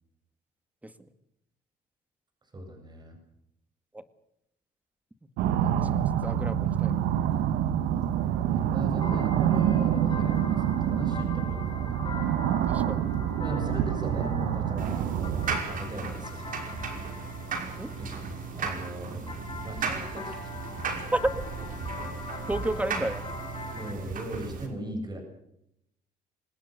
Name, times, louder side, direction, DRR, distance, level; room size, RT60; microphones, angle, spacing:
voice 1, 2.5-3.2 8.5-12.0 13.4-16.6 18.0-18.2 18.6-20.6 23.8-25.2, right 1 dB, 25° right, 4 dB, 7.7 m, -39 dB
sound 1, 5.4-15.6, right 10 dB, 90° right, 1.5 m, -26 dB
voice 2, 5.5-7.3 12.7-13.1 17.8-17.9 21.1-21.2 22.5-23.2, right 1 dB, 10° right, 11 dB, 2.0 m, -33 dB
sound 2, 8.2-23.9, left 3 dB, 30° left, 7.0 m, -43 dB
sound 3, 14.8-24.7, right 5 dB, 55° right, 5.6 m, -36 dB
26.0 x 19.5 x 6.7 m, 0.79 s
cardioid pair, 110°, 17 cm